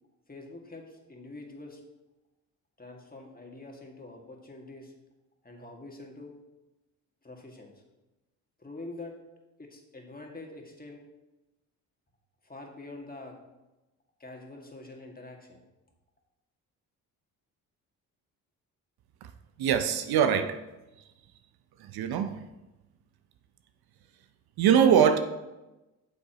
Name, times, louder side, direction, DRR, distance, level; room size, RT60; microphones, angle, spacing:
voice 1, 0.3-1.8 2.8-4.9 5.4-6.3 7.2-7.8 8.6-9.1 9.6-11.0 12.4-13.4 14.2-15.6, left 2 dB, 20° left, 2.0 m, -45 dB
voice 2, 19.6-20.6 21.8-22.4 24.6-25.2, right 8 dB, 60° right, 0.6 m, -23 dB
8.6 x 7.1 x 3.0 m
hypercardioid pair, 50°, 43 cm